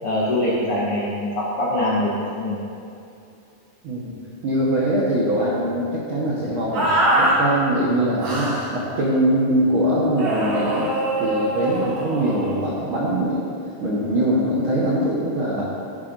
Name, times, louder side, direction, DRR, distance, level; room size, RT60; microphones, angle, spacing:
voice 1, 0.0-2.6, left 1 dB, 85° left, -6 dB, 1.2 m, -23 dB
voice 2, 3.8-4.2 4.4-10.9 11.2-13.4 13.8-15.6, right 1 dB, 75° right, -6 dB, 1.1 m, -22 dB
sound 1, 6.7-7.4 8.2-8.7 10.2-12.5, right 1 dB, 55° right, 3.5 m, -23 dB
12.5 x 9.9 x 2.6 m, 2.6 s
omnidirectional pair, 4.4 m